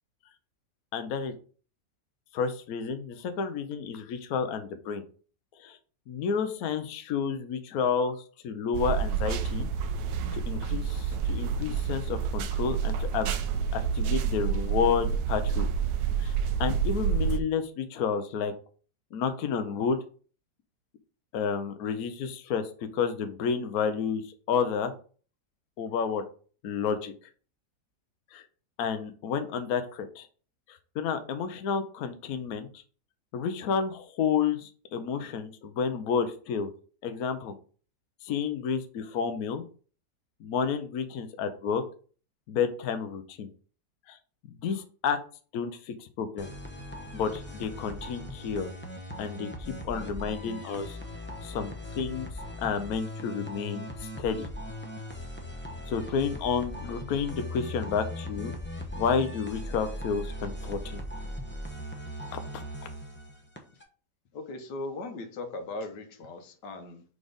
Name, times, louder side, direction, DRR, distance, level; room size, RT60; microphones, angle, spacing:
voice 1, 0.9-1.3 2.3-5.0 5.6-5.8 6.1-8.2 8.4-9.7 10.3-13.3 13.7-15.7 16.2-16.3 16.6-18.5 19.1-20.0 21.3-24.9 25.8-26.2 26.6-27.1 28.3-28.4 28.8-30.3 30.7-32.7 33.3-36.7 37.0-37.5 38.2-39.6 40.4-41.8 42.5-43.5 44.1-44.2 44.5-45.2 45.5-46.5 47.1-48.7 49.2-51.0 51.4-52.3 52.6-54.5 55.9-58.5 59.0-61.0 62.3-62.6, left 6 dB, 65° left, 1.1 m, -30 dB
sound 1, 8.7-17.4, right 7 dB, 75° right, 1.2 m, -28 dB
sound 2, 46.4-63.8, left 1 dB, 10° left, 0.6 m, -39 dB
voice 2, 64.3-67.0, left 2 dB, 85° left, 1.6 m, -38 dB
4.9 x 4.2 x 5.0 m
omnidirectional pair, 1.8 m